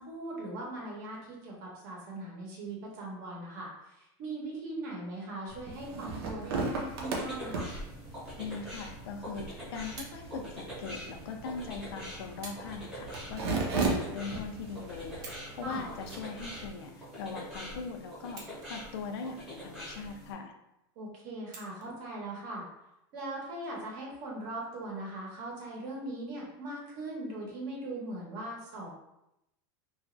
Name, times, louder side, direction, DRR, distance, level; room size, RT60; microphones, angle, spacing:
voice 1, 0.0-7.7 15.6-15.8 21.0-22.7 23.1-28.9, right 2 dB, 50° right, -2 dB, 0.8 m, -40 dB
sound 1, 5.5-16.6, right 3 dB, 85° right, 0.7 m, -37 dB
sound 2, 6.9-20.3, equal, 5° right, 0.8 m, -44 dB
voice 2, 8.4-9.4 9.7-18.4 18.7-20.5, left 5 dB, 75° left, 4 dB, 0.4 m, -40 dB
sound 3, 10.0-10.2 11.1-11.2 12.4-12.7 13.0-13.2 13.8-14.1 14.6-14.7 15.1-15.5 16.0-17.0 18.2-18.9 19.4-19.5 21.5-21.9 22.8-22.9, right 3 dB, 30° right, 0.4 m, -47 dB
2.9 x 2.4 x 2.5 m, 0.86 s
supercardioid pair, 180°, 13 cm